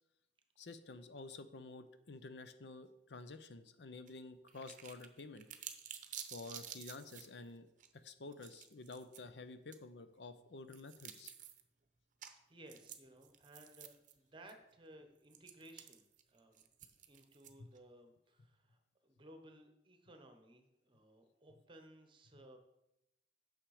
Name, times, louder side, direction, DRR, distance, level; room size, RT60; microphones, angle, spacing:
voice 1, 0.6-5.5 6.3-7.7 7.9-11.3 17.6-17.7, left 3 dB, 75° left, 11 dB, 0.7 m, -51 dB
sound 1, 4.1-4.2 4.5-7.3 7.8-7.9 8.3-9.2 9.7-9.8 10.7-11.6 12.2-12.3 12.7-14.1 14.5-14.6 15.3-17.8, right 9 dB, 45° right, 0.8 m, -51 dB
voice 2, 12.5-16.7 17.1-22.6, right 1 dB, 30° right, 6 dB, 1.1 m, -59 dB
9.0 x 6.5 x 4.9 m, 0.85 s
head